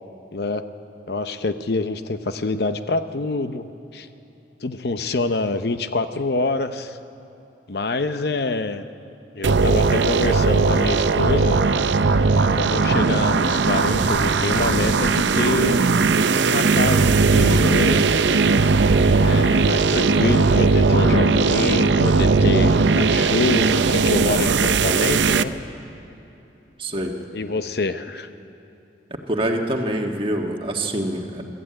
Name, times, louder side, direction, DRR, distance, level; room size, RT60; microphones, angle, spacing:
voice 1, 0.3-0.7 1.1-3.7 3.9-4.1 4.6-7.0 7.7-8.8 9.3-11.6 12.5-15.8 16.4-18.0 19.2-25.5 27.3-28.3, left 3 dB, 60° left, 10 dB, 0.7 m, -26 dB
sound 1, 9.4-25.4, right 4 dB, 80° right, 0.6 m, -18 dB
voice 2, 26.8-27.2 29.1-31.4, right 1 dB, 30° right, 2 dB, 1.6 m, -25 dB
23.5 x 14.0 x 8.8 m, 3.0 s
head